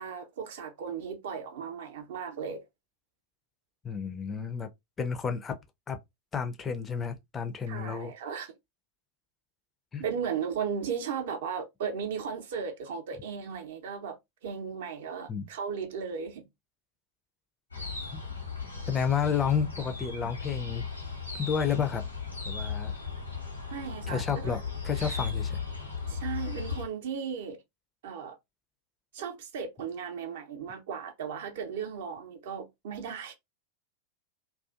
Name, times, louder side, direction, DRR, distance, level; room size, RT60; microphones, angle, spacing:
voice 1, 0.0-2.6 7.7-8.5 10.0-14.2 14.4-16.5 23.7-24.6 25.0-25.2 26.1-27.6 28.0-28.4 29.1-33.3, right 6 dB, 55° right, 0.6 m, -36 dB
voice 2, 3.8-4.7 5.0-5.6 5.9-6.0 6.3-8.1 9.9-10.0 15.3-15.5 18.1-18.2 18.9-20.8 21.3-22.0 22.5-22.9 24.1-25.6, left 7 dB, 20° left, 0.4 m, -31 dB
sound 1, 17.7-26.9, left 5 dB, 85° left, 0.9 m, -36 dB
2.4 x 2.4 x 2.4 m
figure-of-eight pair, 90°, 0 cm